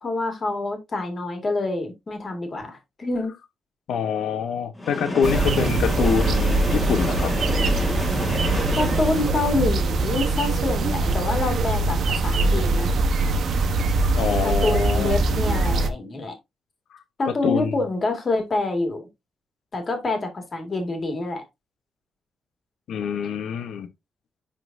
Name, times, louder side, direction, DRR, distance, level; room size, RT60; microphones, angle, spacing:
voice 1, 0.0-3.3 8.8-12.9 14.4-16.3 17.2-19.0 19.7-21.4, left 2 dB, 30° left, 1.9 m, -26 dB
voice 2, 3.9-7.3 14.2-15.1 17.3-17.7 22.9-23.9, left 7 dB, 80° left, 0.9 m, -25 dB
Train, 4.8-9.8, left 1 dB, 10° left, 1.6 m, -29 dB
sound 1, 5.2-15.9, right 3 dB, 55° right, 0.9 m, -22 dB
11.0 x 3.8 x 2.6 m
wide cardioid pair, 165°, 0 cm